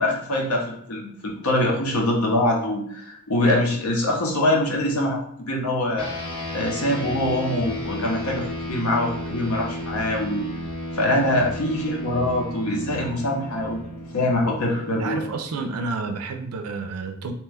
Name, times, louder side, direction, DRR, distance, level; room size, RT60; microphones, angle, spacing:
voice 1, 0.0-6.1 6.5-10.5 10.9-13.8 14.1-15.3, left 1 dB, 75° left, 0 dB, 0.8 m, -24 dB
sound 1, 6.0-15.7, left 1 dB, 25° left, 0.8 m, -33 dB
voice 2, 15.0-17.3, right 4 dB, 85° right, 5 dB, 0.4 m, -30 dB
2.9 x 2.2 x 3.4 m, 0.68 s
head